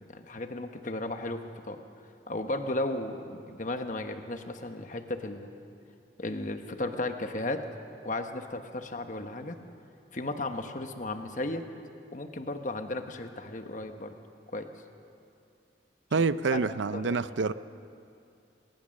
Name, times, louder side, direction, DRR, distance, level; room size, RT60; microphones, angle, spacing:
voice 1, 0.1-1.8 2.3-5.5 6.2-7.7 8.0-9.6 10.1-11.7 12.1-14.1 14.5-14.7 16.5-16.6 16.9-17.2, left 2 dB, 40° left, 7 dB, 1.1 m, -35 dB
voice 2, 16.1-17.5, right 4 dB, 80° right, 15 dB, 0.5 m, -27 dB
21.0 x 19.5 x 6.4 m, 2.5 s
head